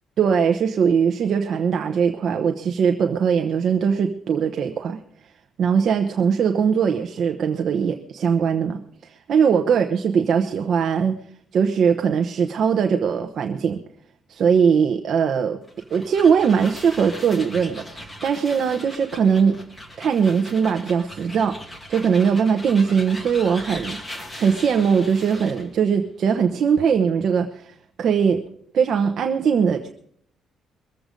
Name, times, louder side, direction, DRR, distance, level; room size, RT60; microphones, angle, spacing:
voice 1, 0.2-5.0 5.6-11.2 11.5-13.8 14.3-15.6 15.9-19.6 20.0-24.0 24.4-28.4 28.7-29.9, right 6 dB, 50° right, 6 dB, 0.9 m, -20 dB
sound 1, 15.6-25.7, left 1 dB, 10° left, 2.1 m, -39 dB
22.5 x 7.8 x 5.2 m, 0.65 s
cardioid pair, 145°, 0 cm